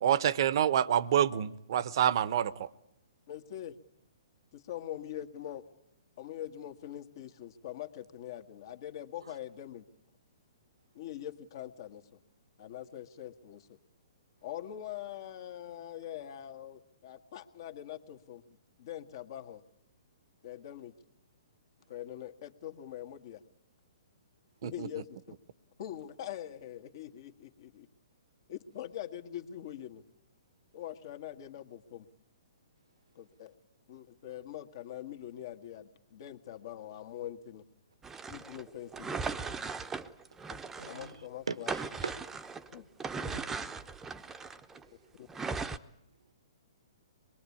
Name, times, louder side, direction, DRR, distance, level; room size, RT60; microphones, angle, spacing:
voice 1, 0.0-2.7 24.6-24.9, right 10 dB, 55° right, 18 dB, 1.0 m, -27 dB
voice 2, 3.3-3.8 4.5-5.6 6.2-9.9 10.9-12.2 12.6-13.8 14.4-19.6 20.4-20.9 21.9-23.4 24.6-25.4 25.8-27.9 28.5-30.0 30.7-32.1 33.2-33.5 33.9-37.6 38.3-39.4 40.5-40.6 40.9-41.7 42.7-42.9 43.2-43.4 45.2-45.5, left 11 dB, 55° left, 6 dB, 1.7 m, -43 dB
sound 1, 38.0-41.2 41.5-44.8 45.3-45.8, right 4 dB, 10° right, 0.9 m, -38 dB
voice 3, 40.8-42.1 43.3-43.7, right 5 dB, 80° right, 15 dB, 1.2 m, -41 dB
25.0 x 22.0 x 8.5 m, 0.78 s
hypercardioid pair, 125°, 3 cm